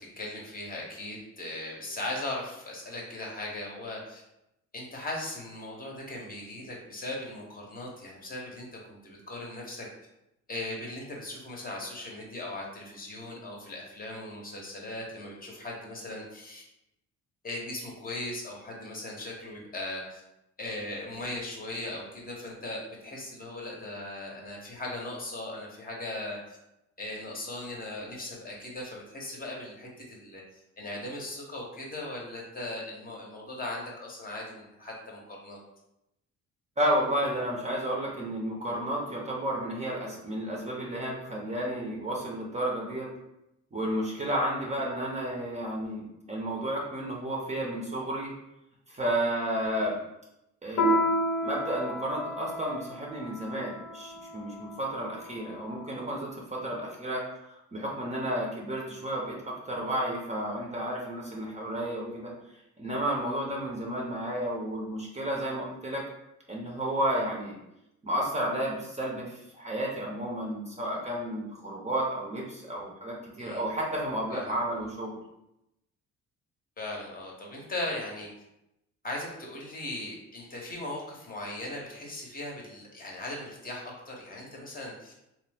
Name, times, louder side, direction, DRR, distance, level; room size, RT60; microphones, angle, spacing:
voice 1, 0.2-4.2 4.7-9.9 10.5-16.6 17.4-20.2 20.6-26.6 27.0-35.6 73.4-73.6 74.3-74.6 76.8-78.3 79.0-85.1, left 1 dB, 30° left, -2 dB, 0.8 m, -38 dB
voice 2, 36.8-43.1 43.7-48.3 48.9-50.0 50.6-51.1 51.4-59.4 59.6-62.3 62.8-66.0 66.5-67.6 68.0-75.2, right 1 dB, 20° right, -2 dB, 0.6 m, -32 dB
Piano, 50.8-55.7, equal, 65° left, 0.7 m, -31 dB
2.9 x 2.0 x 3.3 m, 0.87 s
cardioid pair, 90°, 30 cm